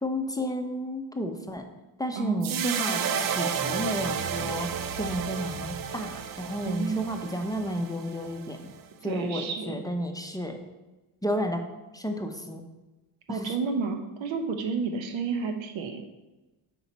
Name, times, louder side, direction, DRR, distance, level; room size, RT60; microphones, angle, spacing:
voice 1, 0.0-1.7 2.0-8.7 9.0-10.6 11.2-11.6 11.9-12.6 13.3-13.5, equal, 10° left, 4 dB, 0.7 m, -32 dB
voice 2, 2.2-3.0 6.7-7.2 9.0-9.8 13.3-16.0, right 5 dB, 90° right, 6 dB, 0.8 m, -31 dB
sound 1, 2.4-8.8, right 7 dB, 50° right, 0.5 m, -32 dB
5.4 x 4.5 x 4.1 m, 1.1 s
cardioid pair, 65°, 45 cm